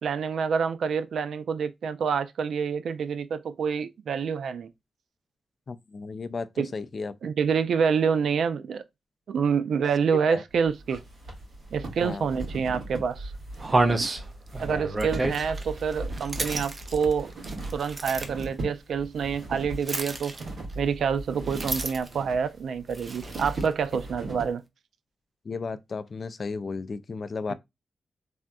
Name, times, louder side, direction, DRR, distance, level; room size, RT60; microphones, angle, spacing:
voice 1, 0.0-4.7 6.6-6.7 7.2-8.8 9.3-11.0 11.7-13.3 14.6-17.3 17.7-20.3 20.8-24.6, right 6 dB, 85° right, 0.4 m, -27 dB
voice 2, 5.7-7.2 10.3-10.4 12.0-12.3 25.5-27.5, left 4 dB, 40° left, 0.3 m, -34 dB
sound 1, 10.5-24.5, right 2 dB, 60° right, 1.8 m, -38 dB
sound 2, 12.4-12.5 13.0-13.1 13.6-18.5 19.8-20.7 21.4-22.2 22.9-23.7, right 2 dB, 30° right, 0.5 m, -30 dB
3.4 x 2.6 x 2.3 m
wide cardioid pair, 140°, 0 cm